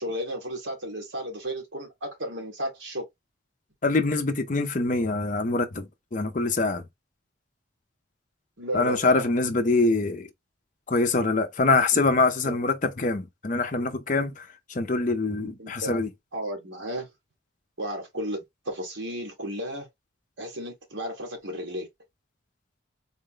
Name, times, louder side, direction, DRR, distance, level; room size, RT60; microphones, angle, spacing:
voice 1, 0.0-3.0 8.6-9.2 12.4-12.6 15.6-16.0 16.3-17.1 17.8-18.4 18.6-19.9 20.4-21.9, equal, 65° right, 1.6 m, -33 dB
voice 2, 3.8-6.8 8.7-10.3 10.9-16.1, left 3 dB, 40° left, 0.6 m, -24 dB
4.0 x 2.0 x 3.8 m
head